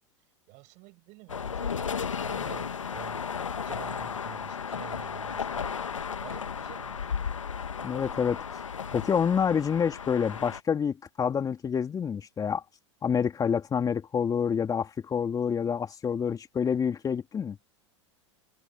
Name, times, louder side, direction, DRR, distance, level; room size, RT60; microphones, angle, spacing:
voice 1, 0.5-3.2 3.6-7.0, right 25 dB, 50° right, 7.0 m, -48 dB
sound 1, 1.3-10.6, left 6 dB, 90° left, 1.4 m, -34 dB
voice 2, 7.8-8.4 8.9-12.6 13.0-17.6, left 7 dB, 25° left, 3.0 m, -27 dB
hypercardioid pair, 95°, 16 cm